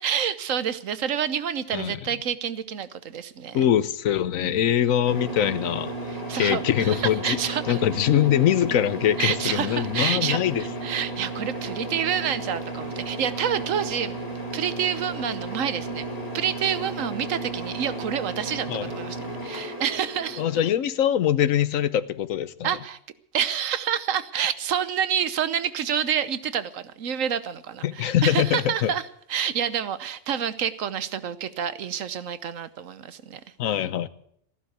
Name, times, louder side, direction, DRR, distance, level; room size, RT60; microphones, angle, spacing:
voice 1, 0.0-3.6 4.4-4.6 6.1-7.8 9.2-14.2 14.5-16.0 16.3-20.4 22.6-23.0 23.3-29.0 29.3-33.4, right 8 dB, 80° right, 1.3 m, -28 dB
voice 2, 3.5-5.9 6.4-7.4 7.7-10.6 18.7-18.9 20.4-22.7 27.8-28.9 33.6-34.1, left 10 dB, 90° left, 1.2 m, -23 dB
sound 1, 5.0-20.7, right 2 dB, 30° left, 2.9 m, -34 dB
14.5 x 11.5 x 8.1 m
omnidirectional pair, 1.3 m